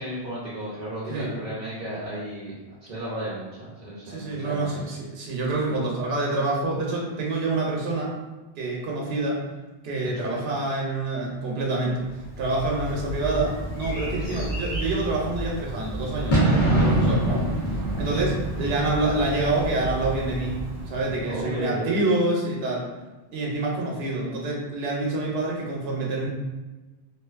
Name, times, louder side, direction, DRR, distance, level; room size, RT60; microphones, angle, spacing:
voice 1, 0.0-2.6 2.8-4.8 10.1-10.4 14.1-14.4 18.1-18.3 21.3-22.0, right 1 dB, 50° right, -8 dB, 0.7 m, -34 dB
voice 2, 4.1-8.1 8.6-9.4 9.8-12.1 12.4-17.5 18.0-20.6 20.9-22.9 23.3-26.3, right 2 dB, 80° right, -2 dB, 0.8 m, -27 dB
Bird / Fireworks, 12.3-21.5, right 1 dB, 55° left, 1.0 m, -27 dB
2.5 x 2.4 x 2.4 m, 1.2 s
omnidirectional pair, 1.0 m